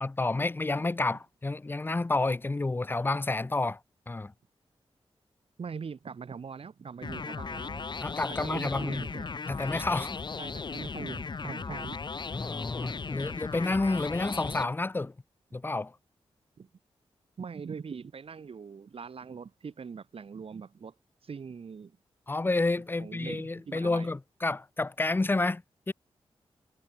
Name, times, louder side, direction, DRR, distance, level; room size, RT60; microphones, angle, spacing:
voice 1, 0.0-3.8 4.1-4.3 8.0-9.0 9.5-10.2 12.3-15.1 15.5-15.9 22.3-25.9, left 2 dB, 20° left, 0.5 m, -30 dB
voice 2, 5.6-7.8 8.3-9.3 10.4-12.1 16.6-16.7 17.4-20.9 21.2-22.0 23.0-24.1, right 6 dB, 65° right, 3.8 m, -42 dB
sound 1, 7.0-14.6, left 4 dB, 45° left, 1.2 m, -37 dB
cardioid pair, 75°, 10 cm